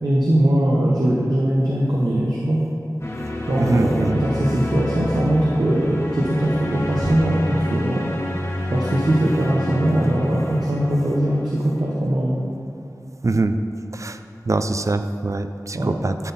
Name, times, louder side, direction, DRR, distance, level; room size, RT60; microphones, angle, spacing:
voice 1, 0.0-2.6 3.5-8.1 8.7-12.4 15.7-15.9, right 1 dB, 75° right, -4 dB, 0.8 m, -20 dB
sound 1, 3.0-11.8, left 1 dB, 45° left, 1.2 m, -28 dB
voice 2, 3.6-4.2 13.2-13.5 13.9-14.2 14.5-16.3, right 2 dB, 50° right, 9 dB, 0.4 m, -23 dB
11.0 x 4.0 x 4.1 m, 2.6 s
wide cardioid pair, 45°, 7 cm